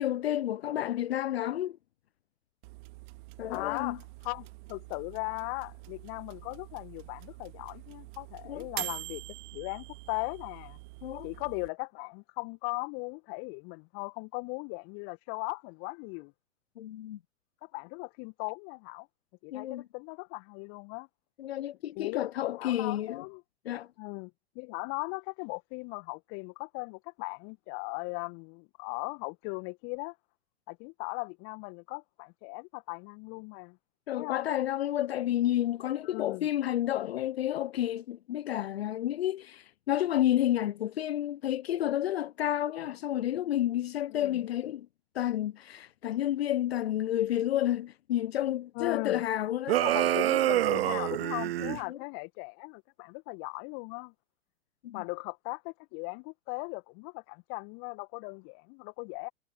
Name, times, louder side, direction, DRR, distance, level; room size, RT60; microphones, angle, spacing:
voice 1, 0.0-1.8 3.4-4.0 8.4-8.7 11.0-11.3 16.8-17.2 19.5-19.8 21.4-23.2 23.6-23.9 34.1-44.9 45.1-49.8 51.6-52.0 54.8-55.0, left 12 dB, 60° left, 1.1 m, -30 dB
sound 1, 2.6-11.7, right 25 dB, 45° right, 2.5 m, -45 dB
voice 2, 3.5-9.2 9.5-10.8 11.2-16.3 17.6-19.1 19.4-21.1 21.9-23.4 24.0-30.1 30.7-33.8 34.2-34.5 36.0-36.5 44.1-44.4 48.7-49.2 49.8-54.1 54.9-59.3, left 37 dB, 40° left, 1.8 m, -38 dB
sound 2, 49.7-51.8, right 14 dB, 60° right, 0.4 m, -26 dB
figure-of-eight pair, 100°, 35 cm